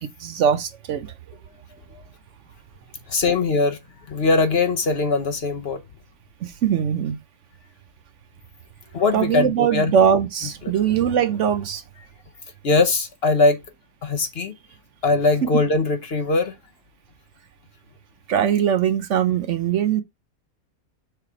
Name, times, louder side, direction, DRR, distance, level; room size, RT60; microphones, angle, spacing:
voice 1, 0.2-1.1 6.4-7.2 9.1-11.8 15.4-15.5 18.3-20.0, right 8 dB, 65° right, 0.9 m, -21 dB
voice 2, 3.1-3.8 4.1-5.8 8.9-9.9 12.6-13.6 14.0-14.5 15.0-16.5, left 3 dB, 50° left, 1.0 m, -20 dB
6.6 x 3.2 x 4.8 m
omnidirectional pair, 1.5 m